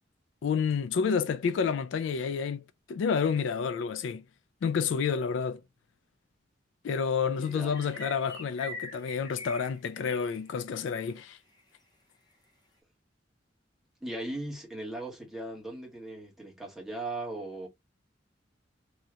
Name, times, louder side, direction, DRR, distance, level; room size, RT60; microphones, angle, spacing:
voice 1, 0.4-4.2 4.6-5.6 6.8-11.4, left 6 dB, 75° left, 0.3 m, -29 dB
voice 2, 7.3-7.7 14.0-17.7, right 2 dB, ahead, 1.2 m, -38 dB
sound 1, 7.4-10.8 11.0-11.2 11.6-11.7, left 2 dB, 20° left, 1.0 m, -44 dB
3.0 x 2.8 x 2.3 m
head